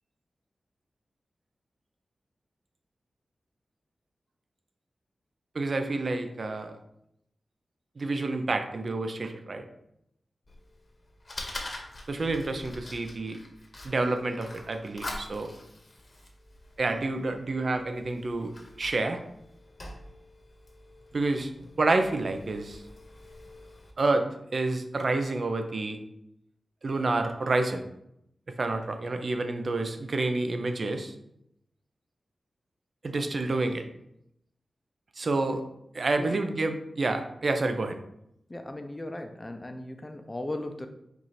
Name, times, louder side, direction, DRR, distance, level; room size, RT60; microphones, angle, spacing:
voice 1, 5.5-6.8 8.0-9.6 12.1-13.4 13.8-15.5 16.8-18.5 18.8-19.2 21.1-21.5 21.8-22.8 24.0-24.3 24.5-26.0 26.8-27.8 28.6-31.1 33.0-33.8 35.2-35.6 35.9-38.0, right 2 dB, 60° right, 7 dB, 0.5 m, -28 dB
Fire, 10.5-23.9, left 1 dB, 40° left, 1.0 m, -45 dB
voice 2, 38.5-40.9, left 1 dB, 25° left, 6 dB, 0.5 m, -37 dB
4.6 x 2.6 x 4.2 m, 0.79 s
cardioid pair, 60°, 0 cm